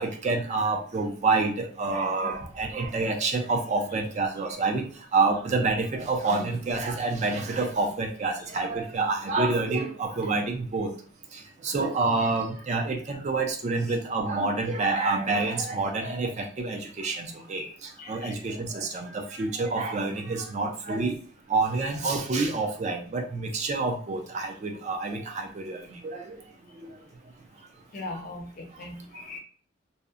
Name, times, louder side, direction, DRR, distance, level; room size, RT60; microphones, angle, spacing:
voice 1, 0.0-4.8 5.1-10.9 11.6-21.2 21.5-26.4 26.8-26.9, right 3 dB, 35° right, 3 dB, 0.3 m, -28 dB
voice 2, 18.0-18.3 27.9-29.4, left 2 dB, 45° left, 2 dB, 0.6 m, -39 dB
2.7 x 2.0 x 2.4 m, 0.43 s
head